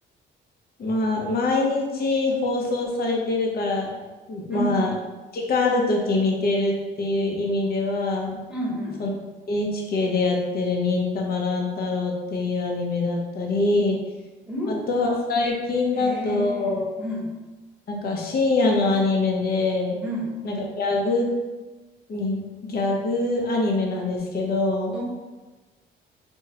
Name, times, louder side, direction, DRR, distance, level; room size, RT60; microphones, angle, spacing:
voice 1, 0.8-4.9 5.3-8.4 9.0-9.1 9.5-14.0 14.7-16.9 17.9-20.0 20.4-21.3 22.1-25.0, left 2 dB, 50° left, 0 dB, 0.6 m, -24 dB
voice 2, 8.5-9.0 14.5-14.8 15.9-16.7 17.0-17.4 20.0-20.3 24.9-25.0, equal, 5° right, -5 dB, 0.9 m, -30 dB
3.4 x 2.0 x 2.7 m, 1.2 s
cardioid pair, 90°, 20 cm